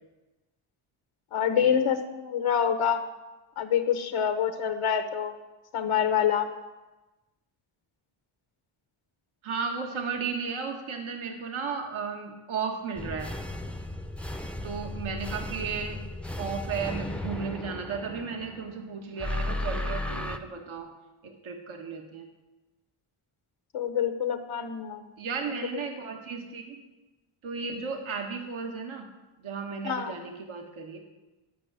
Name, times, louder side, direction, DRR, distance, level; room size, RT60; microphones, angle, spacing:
voice 1, 1.3-3.0 3.6-5.3 5.7-6.5 23.7-25.0 29.8-30.1, left 8 dB, 75° left, 8 dB, 1.1 m, -26 dB
voice 2, 9.4-13.3 14.6-16.0 16.4-20.9 21.2-22.3 25.2-26.8 27.4-29.1 29.4-31.0, right 5 dB, 70° right, 3 dB, 1.5 m, -34 dB
sound 1, 13.0-18.7 19.2-20.4, left 1 dB, ahead, 0.6 m, -35 dB
11.0 x 5.7 x 7.4 m, 1.1 s
cardioid pair, 80°, 50 cm